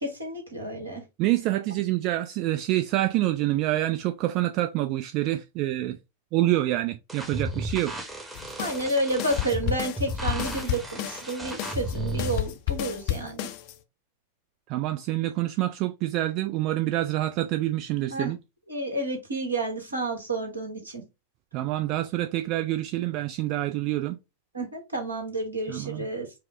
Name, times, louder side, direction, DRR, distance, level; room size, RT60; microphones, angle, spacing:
voice 1, 0.0-1.0 8.6-13.5 18.1-18.3 18.7-21.0 24.5-26.3, right 1 dB, 75° right, 1.3 m, -30 dB
voice 2, 1.2-6.0 6.3-7.9 14.7-18.4 21.5-24.2 25.7-26.1, right 15 dB, 40° right, 0.3 m, -27 dB
sound 1, 7.1-12.4, right 1 dB, 10° right, 0.8 m, -34 dB
sound 2, 8.3-13.7, left 14 dB, 45° left, 0.5 m, -32 dB
4.7 x 2.0 x 3.2 m
figure-of-eight pair, 90°, 0 cm